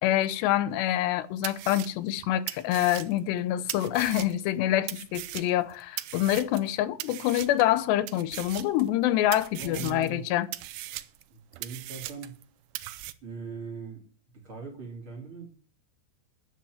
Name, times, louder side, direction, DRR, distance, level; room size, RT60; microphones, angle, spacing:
voice 1, 0.0-10.5, left 13 dB, 85° left, 2.9 m, -26 dB
sound 1, 0.9-1.0 1.4-4.5 4.9-6.7 7.0-7.7 8.1-9.0 9.3-10.1 10.5-12.4 12.8-13.1, right 16 dB, 80° right, 2.7 m, -39 dB
voice 2, 9.6-10.3 11.3-12.4 13.2-14.0 14.3-15.5, right 5 dB, 35° right, 3.3 m, -40 dB
11.0 x 7.9 x 7.9 m
omnidirectional pair, 4.8 m